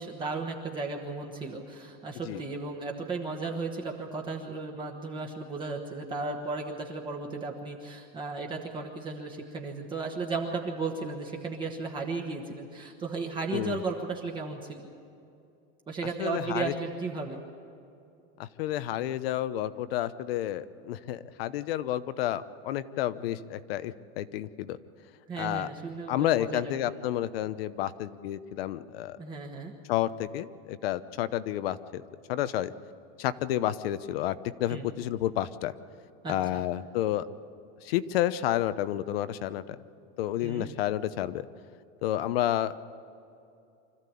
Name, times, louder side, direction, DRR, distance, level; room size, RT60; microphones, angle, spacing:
voice 1, 0.0-14.9 15.9-17.4 25.3-26.7 29.2-29.7 34.7-34.9 36.2-36.6 40.4-40.7, right 3 dB, 15° right, 1 dB, 1.3 m, -35 dB
voice 2, 16.2-16.7 18.4-24.8 25.4-25.7 26.1-29.2 29.9-32.0 32.3-32.7 33.2-35.7 36.3-37.3 37.8-39.8 40.2-41.4 42.0-42.8, left 12 dB, 75° left, 14 dB, 1.0 m, -30 dB
25.0 x 14.5 x 8.5 m, 2.6 s
supercardioid pair, 175°, 30 cm